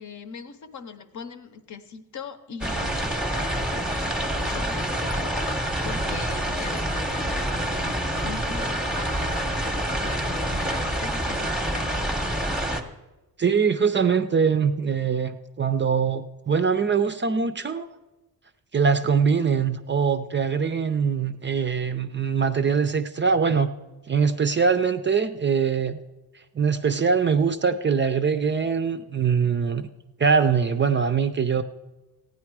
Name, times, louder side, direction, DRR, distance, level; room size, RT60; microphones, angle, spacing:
voice 1, 0.0-12.3, left 6 dB, 50° left, 9 dB, 0.8 m, -41 dB
sound 1, 2.6-12.8, right 1 dB, ahead, 0.8 m, -27 dB
voice 2, 13.4-17.9 18.7-23.7 24.1-25.9 26.5-29.9 30.2-31.6, right 6 dB, 30° right, 9 dB, 0.5 m, -22 dB
15.5 x 9.4 x 4.7 m, 1.1 s
wide cardioid pair, 140°, 38 cm